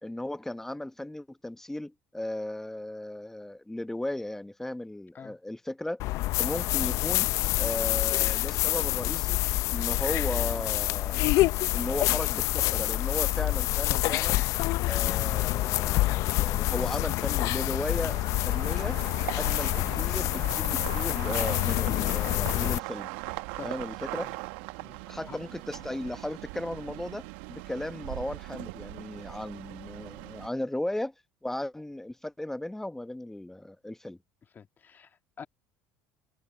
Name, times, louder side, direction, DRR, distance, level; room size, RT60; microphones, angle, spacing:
voice 1, 0.0-6.0 6.4-7.3 7.6-9.4 9.7-11.3 11.7-14.4 14.8-19.0 19.3-23.1 23.6-24.3 25.1-31.1 31.4-34.2, left 1 dB, 5° left, 1.0 m, -36 dB
sound 1, 6.0-22.8, left 18 dB, 65° left, 0.5 m, -27 dB
sound 2, 17.8-30.5, right 21 dB, 80° right, 1.2 m, -40 dB
voice 2, 34.5-35.5, left 6 dB, 35° left, 1.7 m, -46 dB
supercardioid pair, 90°, 6 cm